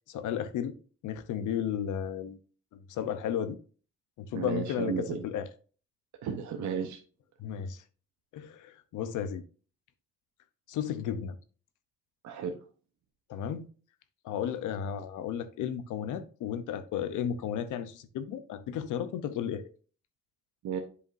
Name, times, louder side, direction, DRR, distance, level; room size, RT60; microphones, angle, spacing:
voice 1, 0.1-0.8 1.0-2.4 2.7-3.6 4.2-5.5 7.4-7.8 8.3-9.4 10.7-11.4 13.3-13.7 14.2-19.7, left 9 dB, 80° left, 0.8 m, -34 dB
voice 2, 4.3-5.2 6.2-7.0 12.2-12.5 20.6-20.8, right 7 dB, 70° right, 0.9 m, -33 dB
8.0 x 5.0 x 2.6 m
cardioid pair, 90°, 30 cm